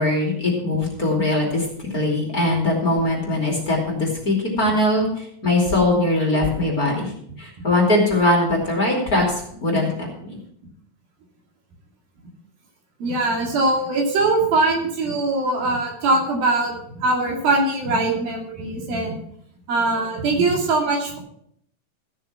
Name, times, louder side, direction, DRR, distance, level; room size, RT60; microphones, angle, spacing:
voice 1, 0.0-1.6 1.9-7.1 7.4-10.3, left 1 dB, 25° left, -2 dB, 2.8 m, -21 dB
voice 2, 13.0-19.2 19.7-21.2, right 2 dB, 80° right, 0 dB, 4.3 m, -21 dB
15.0 x 6.7 x 6.0 m, 0.68 s
omnidirectional pair, 4.1 m